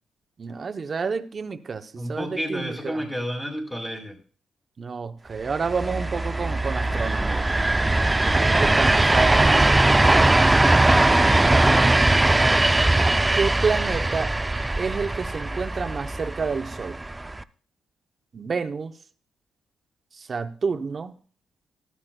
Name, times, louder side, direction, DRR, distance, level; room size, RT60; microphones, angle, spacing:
voice 1, 0.4-3.1 4.8-7.6 8.2-10.8 13.3-14.4 14.8-17.0 18.3-19.0 20.1-21.2, right 5 dB, 40° right, 0.7 m, -29 dB
voice 2, 2.0-4.2 11.5-12.5, equal, 10° left, 2.1 m, -32 dB
sound 1, 5.5-17.4, right 2 dB, 15° right, 0.4 m, -20 dB
13.5 x 12.5 x 2.2 m
cardioid pair, 90°, 0 cm